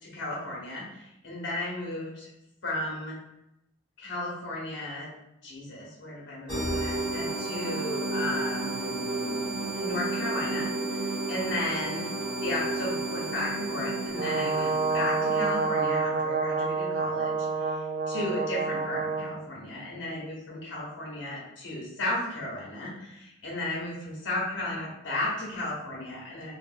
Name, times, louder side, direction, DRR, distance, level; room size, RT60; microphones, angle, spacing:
voice 1, 0.0-2.3 2.6-3.2 4.0-5.1 5.4-12.1 12.4-26.5, left 1 dB, 65° left, -4 dB, 0.8 m, -34 dB
sound 1, 6.5-15.8, right 2 dB, 5° right, 1.0 m, -32 dB
Brass instrument, 14.2-19.4, right 4 dB, 50° right, 0.3 m, -28 dB
2.5 x 2.0 x 2.5 m, 0.83 s
head